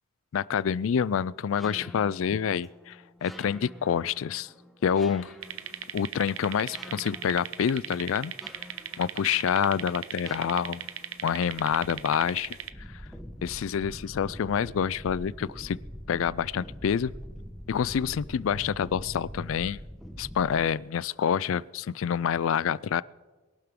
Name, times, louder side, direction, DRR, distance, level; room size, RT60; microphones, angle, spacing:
voice 1, 0.3-4.5 4.8-5.3 5.9-8.3 9.0-10.8 11.2-12.6 13.4-15.8 16.1-17.1 17.7-19.8 20.2-23.0, left 7 dB, 70° left, 21 dB, 0.4 m, -27 dB
sound 1, 1.5-20.7, equal, ahead, 1.1 m, -45 dB
sound 2, 5.4-12.7, right 10 dB, 80° right, 0.7 m, -38 dB
23.0 x 11.5 x 3.7 m, 1.3 s
head